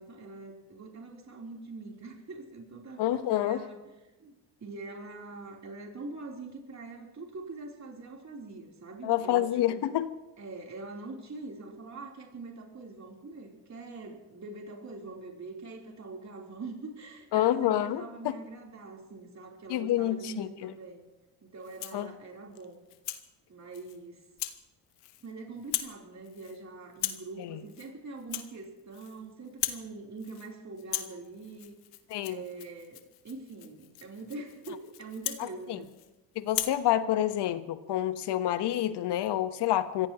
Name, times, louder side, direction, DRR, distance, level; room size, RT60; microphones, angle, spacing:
voice 1, 0.0-3.9 4.2-4.3 4.6-9.9 10.4-21.1 21.4-22.8 23.5-24.3 25.2-31.8 32.2-35.9, right 3 dB, 35° right, -1 dB, 3.8 m, -43 dB
voice 2, 3.0-3.6 9.0-10.1 17.3-18.3 19.7-20.7 21.9-22.1 27.4-27.6 32.1-32.4 35.4-35.8 36.3-40.1, left 12 dB, 60° left, 12 dB, 1.3 m, -28 dB
Rattle (instrument), 21.6-22.1 22.6-23.3 23.7-24.0 24.4-24.6 24.9-25.3 25.6-26.0 26.2-26.6 26.9-27.3 27.7-27.9 28.2-29.2 29.5-29.9 30.2-30.5 30.8-36.1 36.5-36.8, left 16 dB, 85° left, 1.2 m, -38 dB
25.5 x 16.0 x 3.0 m, 1.1 s
hypercardioid pair, 60°, 45 cm